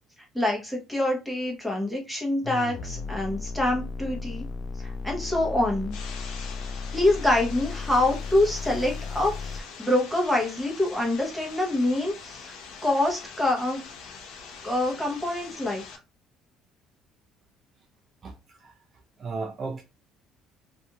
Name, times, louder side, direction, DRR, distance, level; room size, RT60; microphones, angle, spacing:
voice 1, 0.3-4.4 4.8-5.9 6.9-12.5 12.8-13.8 14.6-15.8, left 1 dB, ahead, 0.8 m, -26 dB
sound 1, 2.4-9.6, left 4 dB, 45° left, 0.3 m, -35 dB
sound 2, 5.9-16.0, left 5 dB, 80° left, 0.6 m, -44 dB
voice 2, 19.2-19.8, right 4 dB, 35° right, 0.4 m, -34 dB
2.5 x 2.4 x 2.8 m
cardioid pair, 145°, 0 cm